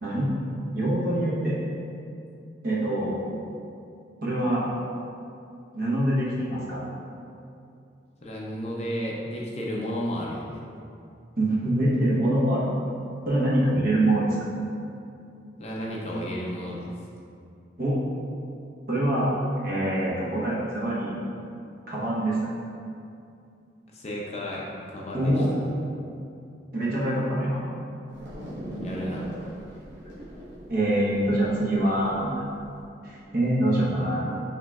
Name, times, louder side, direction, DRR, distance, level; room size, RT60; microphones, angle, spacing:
voice 1, 0.0-0.4 0.7-1.6 2.6-3.1 4.2-4.7 5.7-6.8 11.4-12.7 13.3-14.4 17.8-18.0 18.9-21.2 21.9-22.5 25.1-25.6 26.7-27.6 30.7-32.3 33.0-34.4, right 1 dB, 50° right, -7 dB, 0.9 m, -24 dB
voice 2, 8.2-10.6 15.6-16.9 23.9-25.4 28.7-29.3 29.5-29.7, equal, 35° left, -3 dB, 0.5 m, -33 dB
sound 1, 28.1-32.8, right 1 dB, 75° right, 1.1 m, -39 dB
5.9 x 3.0 x 2.3 m, 2.5 s
head